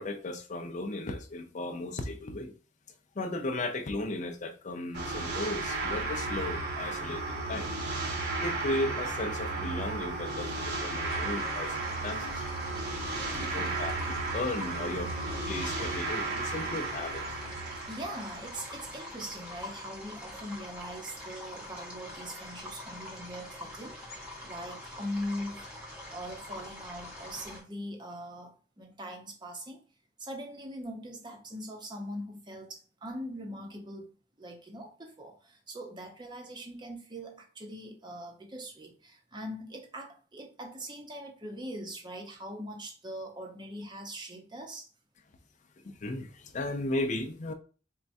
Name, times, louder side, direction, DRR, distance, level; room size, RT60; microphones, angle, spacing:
voice 1, 0.0-2.5 3.2-7.7 8.4-12.5 13.1-15.1 15.5-17.2 45.8-47.5, left 2 dB, 45° left, 0.5 m, -35 dB
sound 1, 4.9-19.3, right 3 dB, 65° right, 1.0 m, -34 dB
sound 2, 11.0-27.6, left 1 dB, 5° right, 1.1 m, -44 dB
voice 2, 17.9-24.0 24.4-25.6 26.1-29.8 30.2-44.9, equal, 25° right, 0.8 m, -41 dB
4.3 x 2.3 x 2.6 m
head